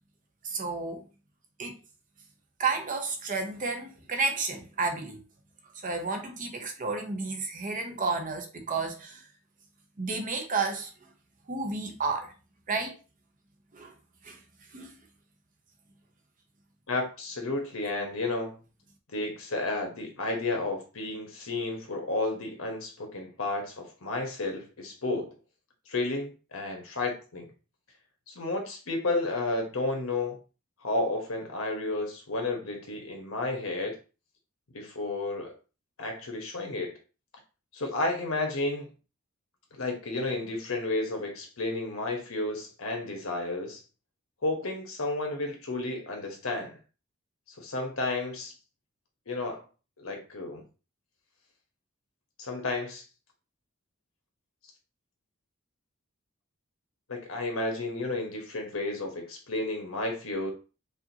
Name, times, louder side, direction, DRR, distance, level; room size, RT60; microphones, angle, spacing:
voice 1, 0.4-1.0 1.6-1.7 2.6-5.2 5.8-9.2 10.0-10.9 11.5-12.3 12.7-12.9 13.7-13.9 14.2-14.4 14.7-14.9, right 4 dB, 40° right, 0.8 m, -31 dB
voice 2, 16.9-18.6 19.1-25.3 25.9-27.5 28.3-30.4 30.8-34.0 34.7-35.5 36.0-37.0 37.7-38.9 39.7-43.8 44.4-46.8 47.6-48.5 49.3-49.6 50.0-50.6 52.4-53.0 57.1-60.5, left 2 dB, 80° left, 1.2 m, -32 dB
4.9 x 2.6 x 2.9 m
head